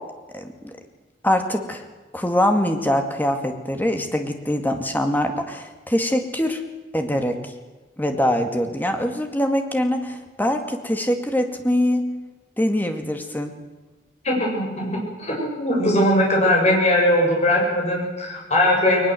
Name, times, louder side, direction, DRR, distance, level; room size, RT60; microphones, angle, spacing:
voice 1, 0.3-0.7 1.2-1.8 2.1-6.6 6.9-7.4 8.0-12.0 12.6-13.5, left 1 dB, 10° left, 5 dB, 2.1 m, -23 dB
voice 2, 14.2-19.1, left 1 dB, 40° left, -1 dB, 7.1 m, -20 dB
21.0 x 20.0 x 7.8 m, 1.3 s
head